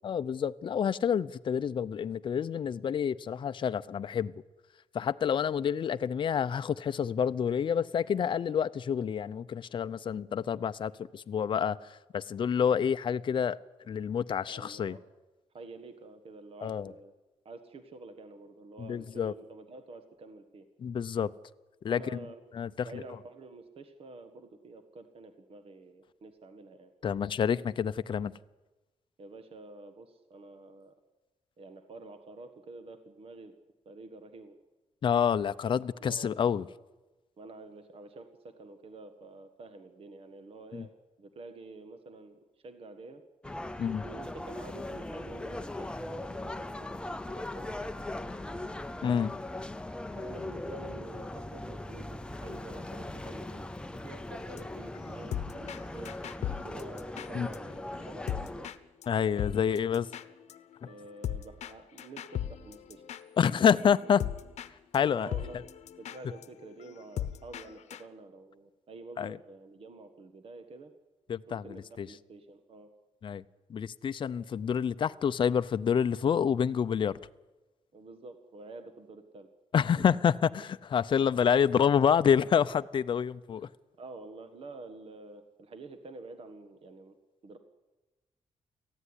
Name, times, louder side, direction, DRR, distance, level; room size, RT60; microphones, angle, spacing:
voice 1, 0.0-4.3 4.9-13.6 13.9-15.0 16.6-16.9 18.8-19.3 20.8-21.3 21.8-22.0 22.5-23.0 27.0-28.3 35.0-36.7 40.7-40.8 43.8-44.0 49.0-49.3 57.3-57.5 59.1-60.1 63.4-64.2 64.9-65.3 69.2-69.4 71.3-72.1 73.2-73.4 73.7-77.2 79.7-83.7, left 7 dB, 45° left, 0.6 m, -28 dB
voice 2, 14.5-15.0 15.5-17.1 17.4-20.7 21.9-22.4 22.8-26.9 29.2-30.9 31.6-33.5 33.8-34.6 36.0-36.3 37.4-40.9 41.2-43.2 44.0-47.0 47.3-48.2 50.1-53.7 54.0-56.1 56.6-58.8 60.9-63.0 63.4-63.7 64.0-64.1 65.2-65.6 66.0-70.9 71.5-72.9 77.9-79.5 83.6-87.2 87.4-87.6, right 3 dB, 55° right, 1.5 m, -48 dB
sound 1, 43.4-58.7, left 1 dB, 10° left, 0.7 m, -39 dB
sound 2, 54.4-57.6 57.9-58.8 59.0-59.1 59.4-64.7 64.9-65.0 65.3-68.0, left 10 dB, 75° left, 0.9 m, -39 dB
18.5 x 15.0 x 9.8 m
wide cardioid pair, 135°, 12 cm